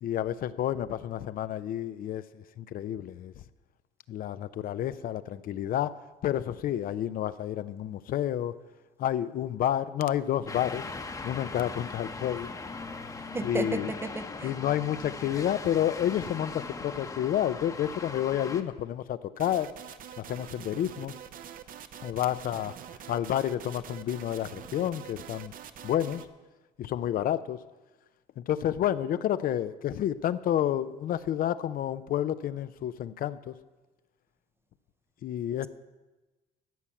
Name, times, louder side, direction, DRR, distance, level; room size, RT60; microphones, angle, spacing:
voice 1, 0.0-3.3 4.1-5.9 6.2-8.6 9.0-10.9 11.2-12.5 13.4-13.9 14.4-19.7 20.2-21.1 22.0-22.7 23.1-25.5 25.8-26.2 26.8-27.6 28.4-33.5 35.2-35.7, left 11 dB, 55° left, 14 dB, 0.5 m, -30 dB
sound 1, 10.5-18.6, left 3 dB, 20° left, 0.9 m, -40 dB
voice 2, 13.3-14.5, right 2 dB, 15° right, 12 dB, 0.6 m, -33 dB
sound 2, 19.4-26.3, right 9 dB, 55° right, 0.7 m, -45 dB
14.0 x 5.7 x 8.5 m, 1.2 s
cardioid pair, 110°, 17 cm